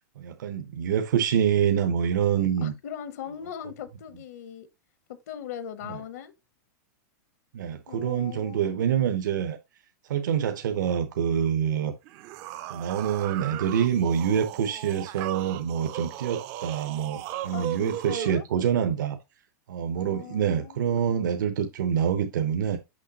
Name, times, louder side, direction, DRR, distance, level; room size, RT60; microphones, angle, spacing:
voice 1, 0.2-2.7 7.5-9.6 10.1-11.9 12.7-19.2 19.7-22.8, right 8 dB, 85° right, 0.8 m, -26 dB
voice 2, 2.6-4.7 5.1-6.3 7.9-8.8 17.5-18.4 20.0-21.1, left 9 dB, 55° left, 0.8 m, -40 dB
sound 1, 12.0-18.4, right 13 dB, 25° right, 0.3 m, -37 dB
6.3 x 5.8 x 2.8 m
supercardioid pair, 170°, 10 cm